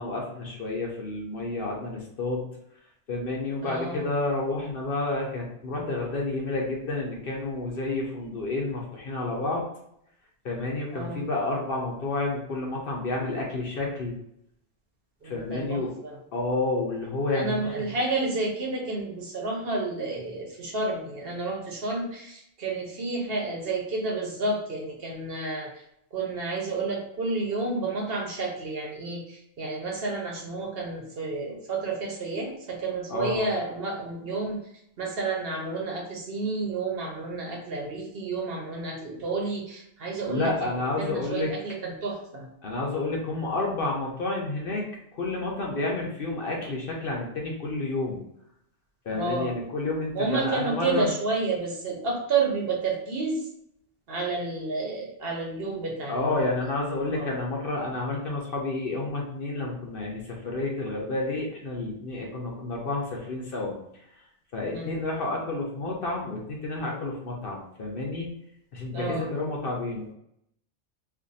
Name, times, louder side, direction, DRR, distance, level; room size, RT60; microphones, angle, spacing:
voice 1, 0.0-2.5 3.1-9.7 10.4-14.1 15.2-15.9 16.3-17.9 33.1-33.5 40.3-41.5 42.6-44.9 45.1-48.2 49.0-51.1 56.1-63.8 64.5-68.3 68.7-70.1, left 2 dB, 55° left, -1 dB, 0.8 m, -30 dB
voice 2, 3.6-4.1 10.9-11.2 15.2-16.2 17.3-25.7 26.1-34.6 35.0-40.7 41.0-42.5 49.1-49.5 50.1-53.4 54.1-56.7 57.1-57.3 64.7-65.1 68.9-69.3, right 3 dB, 55° right, -1 dB, 0.9 m, -30 dB
2.6 x 2.5 x 3.9 m, 0.74 s
omnidirectional pair, 1.2 m